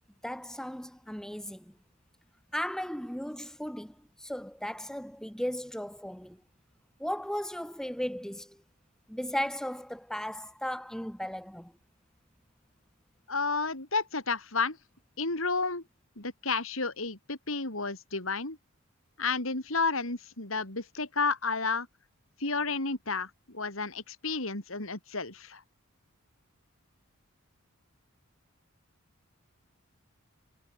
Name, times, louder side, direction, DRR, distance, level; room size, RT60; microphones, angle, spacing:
voice 1, 0.2-1.6 2.5-6.4 7.0-8.6 9.1-11.7, equal, 5° left, 1.3 m, -36 dB
voice 2, 13.3-14.8 15.2-15.8 16.2-18.6 19.2-21.9 22.4-25.6, left 4 dB, 65° left, 4.1 m, -31 dB
head